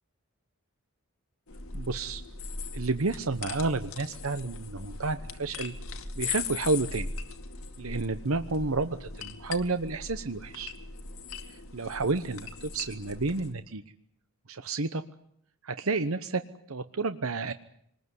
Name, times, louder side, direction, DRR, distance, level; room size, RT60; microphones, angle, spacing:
sound 1, 1.5-13.5, left 4 dB, 80° left, 2.4 m, -39 dB
voice 1, 1.7-2.2 2.7-5.7 6.2-7.1 7.8-10.7 11.7-13.8 14.5-15.0 15.6-17.5, right 3 dB, 80° right, 10 dB, 1.0 m, -30 dB
26.0 x 20.5 x 9.7 m, 0.69 s
head